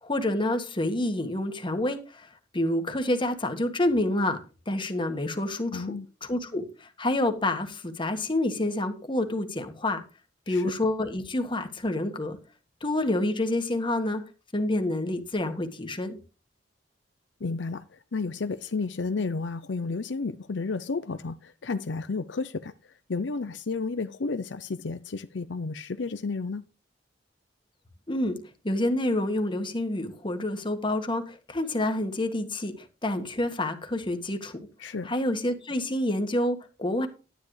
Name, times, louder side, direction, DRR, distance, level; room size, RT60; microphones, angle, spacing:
voice 1, 0.0-4.4 4.7-5.9 6.2-10.0 10.5-12.4 12.8-14.2 14.5-16.2 28.1-28.4 28.6-32.7 33.0-34.7 35.0-37.1, left 1 dB, 25° left, 1.6 m, -28 dB
voice 2, 5.7-6.1 10.5-10.7 17.4-26.6 34.8-35.1, left 4 dB, 70° left, 0.6 m, -32 dB
11.5 x 10.5 x 3.3 m
head